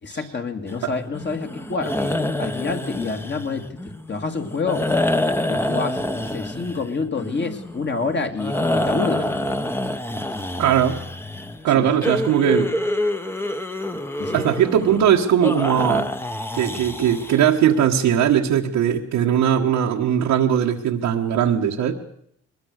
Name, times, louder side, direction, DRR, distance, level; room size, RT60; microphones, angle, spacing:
voice 1, 0.0-4.9 5.5-9.6 10.2-10.4 11.5-11.9 13.9-14.4, left 4 dB, 35° left, 4 dB, 2.5 m, -28 dB
sound 1, 0.7-17.6, left 1 dB, 10° left, 1.2 m, -27 dB
voice 2, 10.6-11.0 11.6-12.7 14.3-16.1 16.5-21.9, right 9 dB, 85° right, -2 dB, 1.6 m, -19 dB
22.5 x 20.0 x 6.6 m, 0.70 s
cardioid pair, 90°, 30 cm